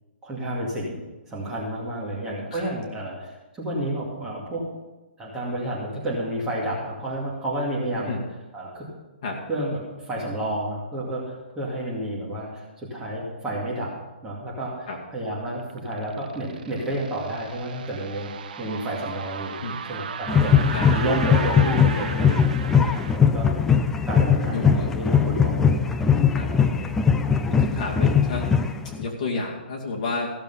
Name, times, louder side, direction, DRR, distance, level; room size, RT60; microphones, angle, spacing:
voice 1, 0.2-1.0 1.3-4.6 5.2-8.2 8.5-8.9 9.5-13.9 14.2-19.6 19.8-22.3 22.6-23.6 24.1-25.7 26.4-26.9, right 1 dB, 10° right, -5 dB, 2.3 m, -30 dB
sound 1, 15.4-23.2, right 7 dB, 50° right, 0.8 m, -36 dB
sound 2, 20.3-29.0, left 6 dB, 5° left, 0.3 m, -20 dB
voice 2, 24.5-24.9 26.3-26.5 27.5-28.5 29.0-30.3, left 3 dB, 40° left, -2 dB, 2.3 m, -30 dB
15.5 x 6.9 x 5.6 m, 1.1 s
hypercardioid pair, 165°, 6 cm